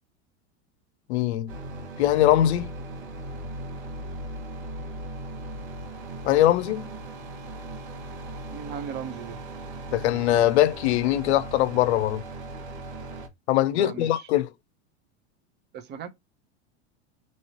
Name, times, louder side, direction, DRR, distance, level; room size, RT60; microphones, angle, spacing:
voice 1, 1.1-1.5 2.0-2.7 6.3-6.9 9.9-12.2 13.5-14.5, left 13 dB, 75° left, 0.6 m, -22 dB
sound 1, 1.5-13.3, right 2 dB, 70° right, 1.3 m, -38 dB
voice 2, 8.5-9.4 13.7-14.3 15.7-16.1, right 7 dB, 30° right, 0.7 m, -37 dB
3.0 x 2.9 x 2.8 m
hypercardioid pair, 110°, 33 cm